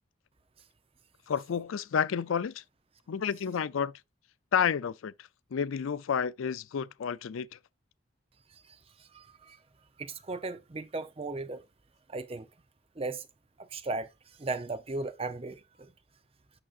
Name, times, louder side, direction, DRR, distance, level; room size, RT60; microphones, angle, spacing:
voice 1, 1.3-2.6 3.1-3.9 4.5-5.1 5.5-7.6, left 7 dB, 90° left, 0.4 m, -30 dB
voice 2, 8.5-9.6 10.0-11.6 12.1-12.5 13.0-13.3 13.6-15.9, right 3 dB, 30° right, 0.5 m, -37 dB
8.8 x 5.9 x 2.4 m
head